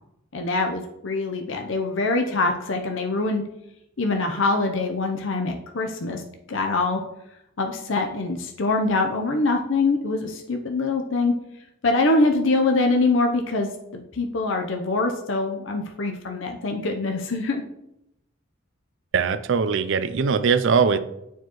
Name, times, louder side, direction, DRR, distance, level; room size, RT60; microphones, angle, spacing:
voice 1, 0.3-3.4 4.0-6.2 6.5-7.0 7.6-11.3 11.8-17.6, left 3 dB, 65° left, 4 dB, 0.7 m, -24 dB
voice 2, 19.1-21.0, right 5 dB, 60° right, 11 dB, 0.4 m, -21 dB
9.2 x 4.7 x 3.1 m, 0.83 s
head